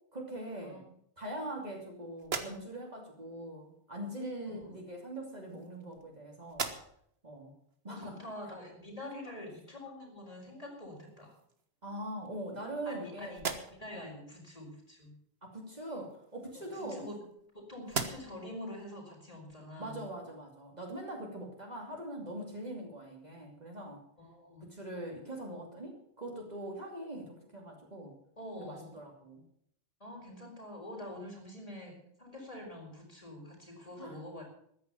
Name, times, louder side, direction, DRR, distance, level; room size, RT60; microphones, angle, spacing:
voice 1, 0.1-6.7 7.2-7.6 7.8-8.2 9.2-9.5 11.8-13.4 13.9-14.1 15.4-17.1 19.8-24.0 24.6-28.2 28.6-29.4 34.0-34.2, right 1 dB, 35° right, 0 dB, 3.0 m, -42 dB
sound 1, 2.2-3.0 4.1-4.3 5.2-6.1 6.5-7.2 7.7-7.8 10.4-10.6 11.0-11.7 12.3-13.0 13.3-14.0 16.0-17.5 17.8-18.5, right 4 dB, 65° right, 1.6 m, -41 dB
voice 2, 4.5-4.8 7.9-11.4 12.8-15.2 16.5-17.2 17.5-20.0 24.2-24.7 28.4-29.0 30.0-34.4, left 1 dB, 30° left, -1 dB, 5.0 m, -46 dB
14.0 x 10.5 x 7.0 m, 0.69 s
omnidirectional pair, 1.2 m